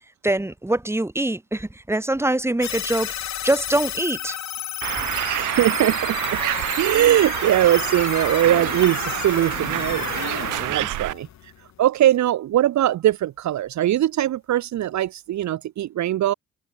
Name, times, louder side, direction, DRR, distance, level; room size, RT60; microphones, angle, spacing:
voice 1, 0.2-4.4 5.0-5.1, right 1 dB, 10° right, 2.5 m, -24 dB
sound 1, 2.6-11.9, left 11 dB, 65° left, 2.0 m, -32 dB
Bird, 4.8-11.1, right 16 dB, 90° right, 3.7 m, -27 dB
voice 2, 5.4-6.4 6.8-11.5 11.8-16.3, right 13 dB, 65° right, 1.1 m, -21 dB
cardioid pair, 90°, 30 cm